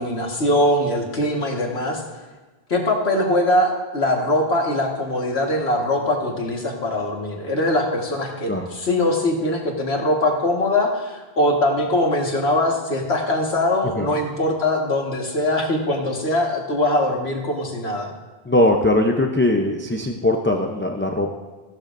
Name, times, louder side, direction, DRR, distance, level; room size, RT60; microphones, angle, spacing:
voice 1, 0.0-2.0 2.7-18.1, left 1 dB, 85° left, 0 dB, 1.9 m, -22 dB
voice 2, 18.5-21.3, left 1 dB, 15° left, 2 dB, 0.6 m, -20 dB
16.0 x 12.0 x 2.6 m, 1.3 s
omnidirectional pair, 1.0 m